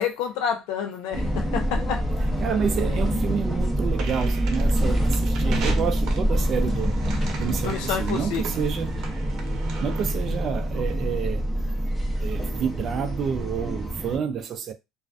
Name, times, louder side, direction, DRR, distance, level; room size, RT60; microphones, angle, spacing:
voice 1, 0.0-2.0 7.6-8.4, left 7 dB, 80° left, 0.5 m, -28 dB
sound 1, 1.1-14.2, equal, 5° left, 0.6 m, -26 dB
voice 2, 2.4-7.0 7.4-9.0 9.8-11.5 12.2-14.7, right 7 dB, 40° right, 0.3 m, -29 dB
sound 2, 4.0-10.3, right 4 dB, 55° right, 0.7 m, -38 dB
2.4 x 2.2 x 2.4 m
cardioid pair, 135°, 0 cm